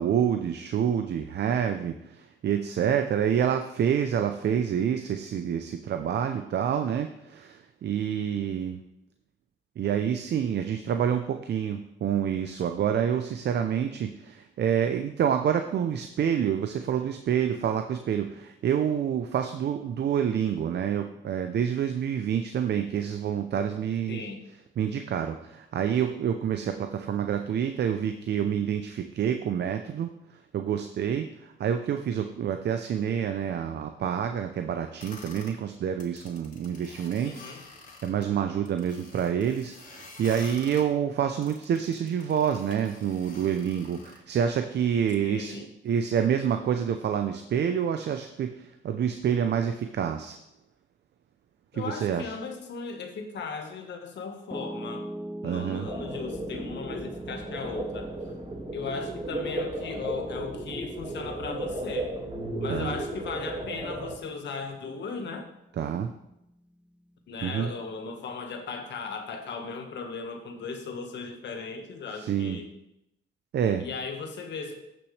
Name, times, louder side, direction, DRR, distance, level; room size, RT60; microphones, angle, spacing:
voice 1, 0.0-8.8 9.8-24.2 24.8-37.3 38.0-45.6 45.8-50.4 51.7-52.3 55.4-55.9 62.7-63.0 65.8-66.1 67.4-67.7 72.1-72.6 73.5-73.9, right 8 dB, 60° right, 7 dB, 0.6 m, -27 dB
voice 2, 24.1-24.4 37.2-37.6 45.2-45.7 51.7-55.1 55.4-58.1 58.7-62.1 62.6-65.5 67.3-72.7 73.8-74.7, left 4 dB, 65° left, 5 dB, 1.5 m, -37 dB
sound 1, 35.0-35.6 35.9-38.3 38.7-40.9 41.4-44.2, left 3 dB, 40° left, 2.2 m, -48 dB
Piano, 54.5-66.7, equal, 5° right, 0.5 m, -43 dB
sound 2, 55.9-64.2, right 2 dB, 30° right, 2.1 m, -35 dB
15.0 x 6.1 x 3.3 m, 0.85 s
cardioid pair, 90°, 20 cm